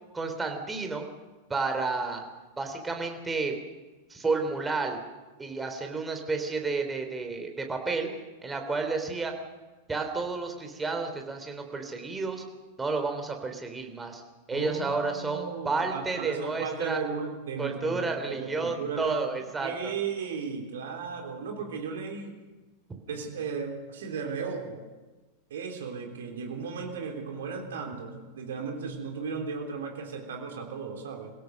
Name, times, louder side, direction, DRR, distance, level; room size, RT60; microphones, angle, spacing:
voice 1, 0.1-1.0 1.5-2.2 2.6-3.6 4.1-5.0 5.4-8.1 8.4-9.3 9.9-12.4 12.8-14.2 14.5-17.0 17.6-19.9, right 3 dB, 15° right, 4 dB, 3.3 m, -31 dB
voice 2, 14.5-22.3 23.1-24.8 25.5-31.3, right 5 dB, 60° right, 3 dB, 3.5 m, -35 dB
25.5 x 16.5 x 6.5 m, 1.2 s
figure-of-eight pair, 90°, 0 cm